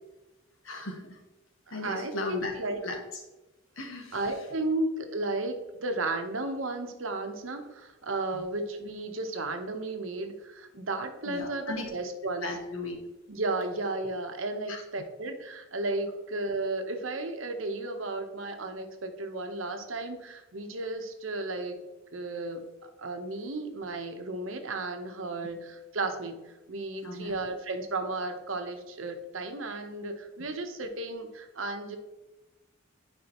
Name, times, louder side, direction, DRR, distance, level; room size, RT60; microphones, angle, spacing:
voice 1, 0.6-1.2 1.7-2.5 2.8-3.2 3.8-4.2 8.3-8.4 11.2-11.9 12.4-13.0 14.7-14.8 27.0-27.3, left 2 dB, 85° left, 3 dB, 1.4 m, -36 dB
voice 2, 1.7-2.8 4.1-12.5 13.3-21.8 22.1-26.4 26.7-32.0, right 2 dB, 80° right, 6 dB, 1.0 m, -34 dB
9.6 x 5.0 x 3.0 m, 1.0 s
head